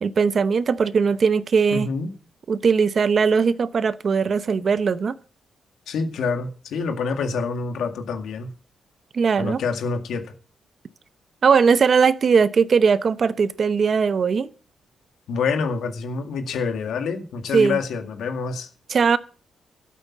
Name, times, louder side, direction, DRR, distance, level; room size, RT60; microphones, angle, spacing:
voice 1, 0.0-1.9 2.5-5.1 9.1-9.6 11.4-14.5 17.5-17.8 18.9-19.2, right 5 dB, 40° right, 0.8 m, -19 dB
voice 2, 1.7-2.1 5.9-8.5 9.4-10.3 15.3-18.7, left 5 dB, 85° left, 2.1 m, -27 dB
13.0 x 8.4 x 7.3 m
wide cardioid pair, 165°, 0 cm